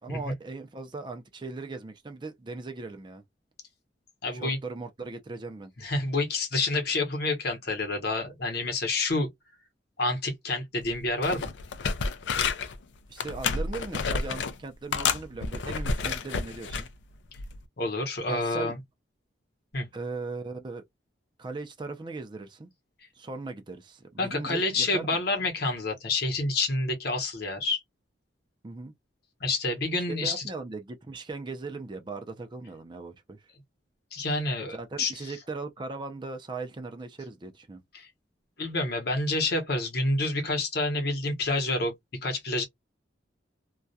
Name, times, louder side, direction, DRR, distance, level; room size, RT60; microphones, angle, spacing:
voice 1, 0.0-3.2 4.3-5.7 13.1-16.9 18.3-18.7 19.9-20.8 21.4-22.7 23.1-25.2 28.6-28.9 30.1-33.5 34.7-37.8, right 3 dB, 25° right, 0.4 m, -38 dB
voice 2, 4.2-4.6 5.8-9.3 10.0-11.5 17.8-18.8 19.7-19.9 24.2-27.8 29.4-30.4 34.1-35.1 37.9-38.1 38.6-41.9 42.2-42.6, left 2 dB, 55° left, 0.9 m, -28 dB
sound 1, 10.8-10.9 11.2-12.8 13.2-14.5 14.9-16.9 17.4-17.6, left 5 dB, 75° left, 0.4 m, -30 dB
2.3 x 2.1 x 2.5 m
head